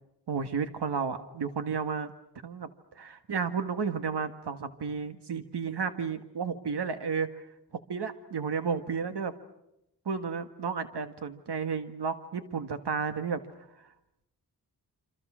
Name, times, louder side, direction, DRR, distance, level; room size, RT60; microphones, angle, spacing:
voice 1, 0.3-2.1 2.4-2.7 2.9-7.5 7.9-9.3 10.0-13.4, right 6 dB, 80° right, 9 dB, 1.8 m, -32 dB
27.0 x 26.0 x 6.3 m, 0.85 s
wide cardioid pair, 120°, 39 cm